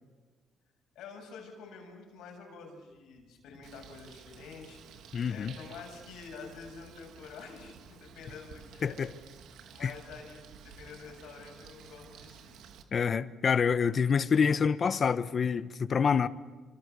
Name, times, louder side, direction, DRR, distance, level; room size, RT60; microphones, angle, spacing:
voice 1, 1.0-5.0 5.3-9.0 9.7-12.6, left 5 dB, 90° left, 7.3 m, -48 dB
Bird, 3.6-12.8, right 7 dB, 85° right, 2.2 m, -52 dB
voice 2, 5.1-5.5 8.8-9.1 9.8-9.9 12.9-16.3, left 6 dB, 45° left, 1.1 m, -27 dB
28.0 x 25.5 x 6.8 m
cardioid pair, 90°, 0 cm